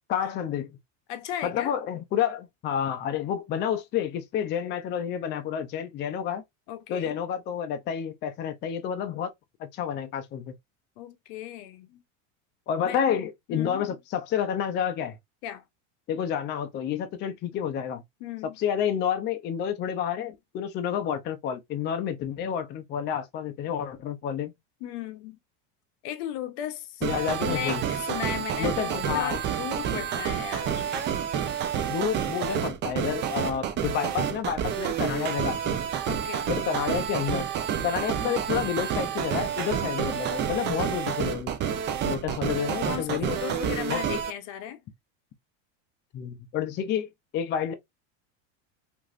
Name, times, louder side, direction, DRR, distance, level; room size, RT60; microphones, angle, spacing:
voice 1, 0.1-0.8 1.4-6.4 6.9-9.3 9.6-10.5 12.7-15.2 16.1-18.0 18.6-24.5 27.0-27.8 28.6-29.4 31.9-35.8 36.5-37.5 37.8-41.5 42.0-43.3 43.9-44.0 46.1-47.7, left 8 dB, 30° left, 0.4 m, -29 dB
voice 2, 1.1-1.7 6.7-7.2 11.0-12.0 12.8-13.0 13.5-13.9 15.4-15.6 18.2-18.6 24.8-25.4 26.0-27.1 27.4-31.0 36.0-36.5 42.8-44.8, left 11 dB, 65° left, 0.7 m, -36 dB
sound 1, 27.0-44.3, right 8 dB, 30° right, 0.4 m, -29 dB
2.9 x 2.6 x 2.4 m
supercardioid pair, 125°, 37 cm